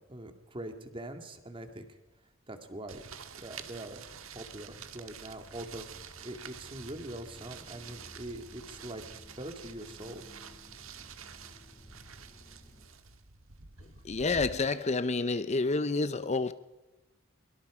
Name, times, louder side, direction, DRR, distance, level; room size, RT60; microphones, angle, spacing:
voice 1, 0.1-2.0 2.5-3.0 3.4-4.1 4.3-10.3, right 1 dB, 25° right, 2.1 m, -43 dB
sound 1, 2.2-12.9, equal, 20° left, 3.9 m, -56 dB
sound 2, 2.9-14.5, right 7 dB, 85° right, 1.5 m, -48 dB
voice 2, 14.0-16.5, left 3 dB, 35° left, 0.7 m, -29 dB
23.5 x 23.0 x 4.9 m
head